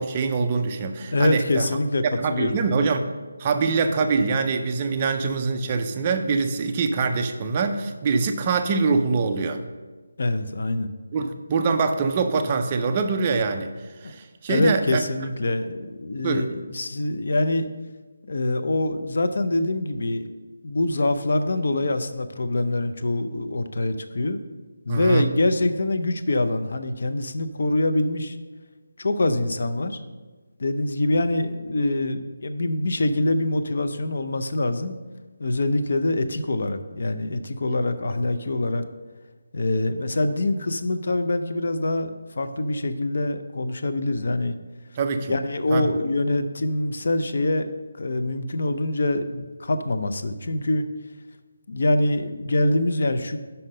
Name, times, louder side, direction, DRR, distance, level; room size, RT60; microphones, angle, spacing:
voice 1, 0.0-1.7 2.1-3.1 3.4-9.6 11.1-13.7 14.0-15.1 16.2-16.5 24.9-25.3 45.0-45.3 45.7-45.9, right 4 dB, 15° right, 6 dB, 0.4 m, -24 dB
voice 2, 1.1-2.6 10.2-10.9 14.0-14.1 14.5-17.7 18.3-20.3 20.6-24.4 24.9-28.4 29.0-30.0 30.6-34.9 35.4-38.8 39.5-42.1 42.4-44.6 45.3-47.7 48.0-50.9 51.7-53.4, left 2 dB, 45° left, 9 dB, 0.5 m, -24 dB
5.8 x 5.4 x 6.4 m, 1.3 s
figure-of-eight pair, 180°, 0 cm